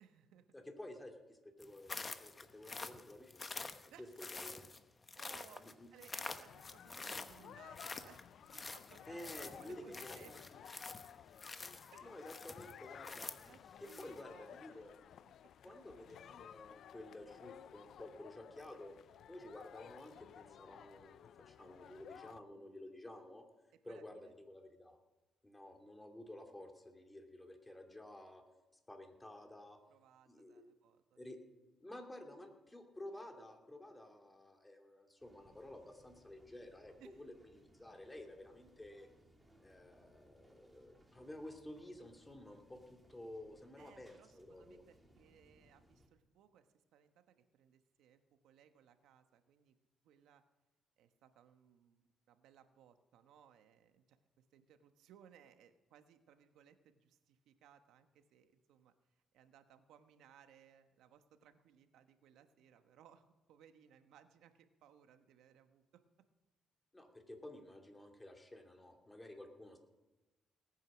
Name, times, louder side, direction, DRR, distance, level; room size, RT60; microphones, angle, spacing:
voice 1, 0.0-0.5 3.9-4.2 5.2-10.4 11.9-12.2 13.4-14.9 23.8-24.3 29.9-31.4 37.0-37.2 43.8-49.8 50.0-50.4 51.0-58.9 59.3-66.0, right 9 dB, 85° right, 8 dB, 1.2 m, -64 dB
voice 2, 0.5-3.6 4.0-4.1 4.3-4.6 5.6-5.9 9.1-10.3 12.0-13.3 13.8-14.9 15.6-18.9 19.3-23.4 23.8-25.0 25.4-28.4 28.9-29.8 30.3-30.7 31.2-31.4 31.8-39.1 39.6-44.8 66.9-69.8, left 1 dB, 15° left, 3 dB, 2.7 m, -52 dB
sound 1, 1.6-14.2, left 3 dB, 30° left, 1.0 m, -48 dB
sound 2, 6.4-22.4, left 9 dB, 70° left, 0.4 m, -56 dB
sound 3, 35.2-46.1, equal, 10° right, 2.9 m, -68 dB
18.5 x 9.1 x 6.3 m, 1.1 s
cardioid pair, 90°, 0 cm